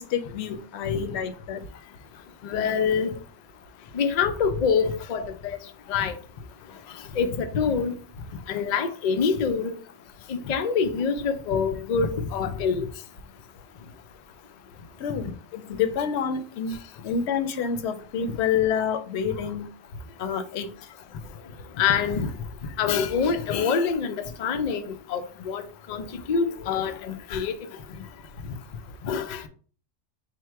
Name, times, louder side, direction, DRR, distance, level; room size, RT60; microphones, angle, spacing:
voice 1, 0.0-1.6 15.0-15.3 15.5-16.8 17.0-19.7 20.2-20.7, left 7 dB, 65° left, 0.8 m, -28 dB
voice 2, 2.4-3.1 3.9-5.6 5.9-6.1 7.2-8.0 8.5-9.7 10.3-12.9 15.2-15.3 21.8-22.3 22.8-24.8 25.1-25.6 25.9-27.5 29.0-29.4, left 6 dB, 85° left, 0.3 m, -25 dB
4.4 x 2.0 x 4.5 m
omnidirectional pair, 1.3 m